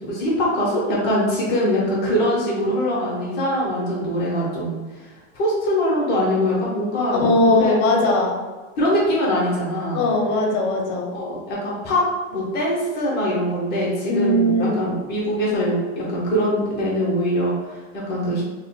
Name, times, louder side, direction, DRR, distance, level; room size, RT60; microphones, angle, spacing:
voice 1, 0.0-4.8 5.3-7.7 8.8-10.1 11.1-12.0 12.3-18.4, equal, 25° left, -5 dB, 0.8 m, -22 dB
voice 2, 7.2-8.4 9.9-11.1 14.0-14.8, left 1 dB, 65° left, 0 dB, 0.7 m, -19 dB
3.6 x 2.1 x 2.2 m, 1.3 s
supercardioid pair, 170°, 37 cm